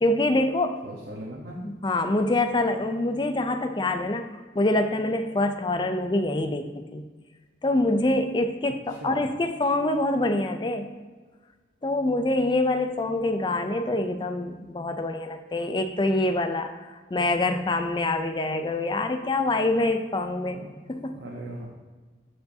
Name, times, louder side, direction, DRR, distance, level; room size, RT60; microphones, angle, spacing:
voice 1, 0.0-0.8 1.6-4.2 4.6-7.0 7.6-10.9 11.8-20.6 20.9-21.2, left 2 dB, 25° left, 8 dB, 0.4 m, -25 dB
voice 2, 0.8-1.6 8.9-9.2 20.5-20.7 21.1-21.7, right 1 dB, 70° right, -2 dB, 1.0 m, -38 dB
13.5 x 4.6 x 2.7 m, 1.4 s
head